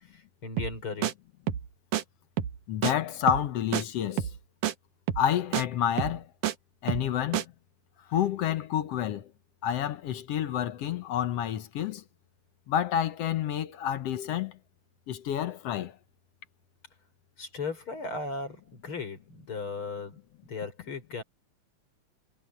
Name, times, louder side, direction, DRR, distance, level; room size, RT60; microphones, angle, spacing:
voice 1, 0.1-1.1 17.4-20.2 20.5-21.2, left 4 dB, 40° left, 5.5 m, -36 dB
sound 1, 0.6-0.8 1.0-1.1 1.5-1.7 1.9-2.0 2.4-2.6 2.8-2.9 3.3-3.5 3.7-3.8 4.2-4.4 4.6-4.7 5.1-5.3 5.5-5.6 6.0-6.5 6.9-7.1 7.3-7.4, right 11 dB, 80° right, 2.8 m, -29 dB
voice 2, 2.7-4.3 5.2-6.3 6.8-7.5 8.1-9.3 9.6-12.0 12.7-14.6 15.1-16.0, left 10 dB, 65° left, 1.8 m, -29 dB
omnidirectional pair, 3.5 m